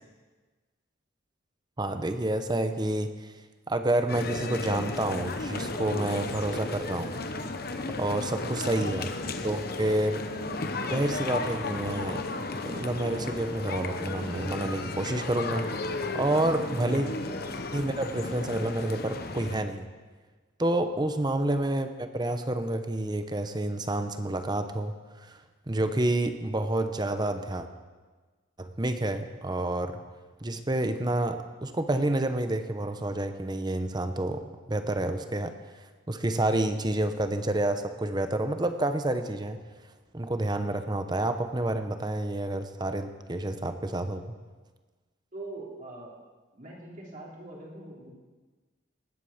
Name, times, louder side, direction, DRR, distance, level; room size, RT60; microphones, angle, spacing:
voice 1, 1.8-3.1 3.7-7.1 8.0-9.1 9.4-10.2 10.9-12.2 12.7-15.7 16.1-17.1 17.7-19.8 20.6-24.9 25.2-25.4 25.7-27.7 28.6-30.0 30.4-35.5 36.1-39.6 40.1-44.2, right 1 dB, 20° right, 8 dB, 0.8 m, -29 dB
sound 1, 4.1-19.6, left 3 dB, 55° left, 1.0 m, -34 dB
voice 2, 8.3-9.0 20.9-21.1 45.3-46.1 46.5-48.1, right 1 dB, 45° right, -4 dB, 3.1 m, -43 dB
19.0 x 8.3 x 7.2 m, 1.3 s
head